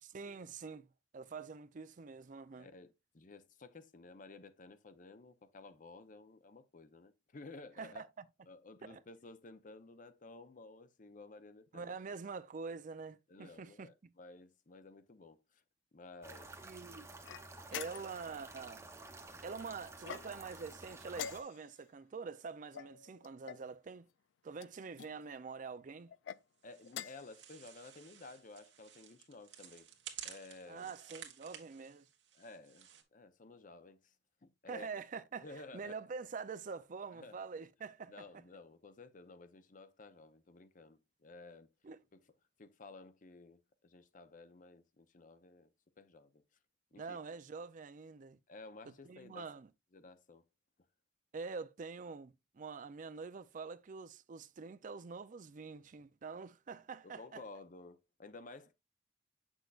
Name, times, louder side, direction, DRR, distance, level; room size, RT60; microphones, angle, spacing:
voice 1, 0.0-2.7 7.8-8.3 8.8-9.0 11.7-13.9 16.6-17.1 17.7-18.9 19.4-24.1 24.4-26.1 30.7-32.1 34.7-38.3 41.8-42.0 46.9-48.4 48.9-49.7 51.3-57.4, right 5 dB, 45° right, 0.4 m, -46 dB
voice 2, 2.6-8.0 8.5-11.9 13.3-15.6 15.9-16.5 26.6-29.9 30.2-30.9 32.4-34.1 34.4-34.9 35.4-35.9 37.2-37.6 38.1-41.7 42.1-42.2 42.6-45.7 46.0-46.4 46.9-47.2 48.5-49.5 49.9-50.4 57.0-58.7, left 3 dB, 45° left, 0.7 m, -54 dB
sound 1, 16.2-21.4, right 2 dB, 15° right, 0.9 m, -52 dB
sound 2, 17.2-18.3 20.0-20.6 21.1-21.8 22.7-23.7 24.6-25.1 26.1-26.4 26.9-27.3, left 9 dB, 75° left, 0.3 m, -46 dB
sound 3, 26.6-33.0, right 9 dB, 75° right, 1.3 m, -53 dB
8.0 x 6.2 x 2.4 m
head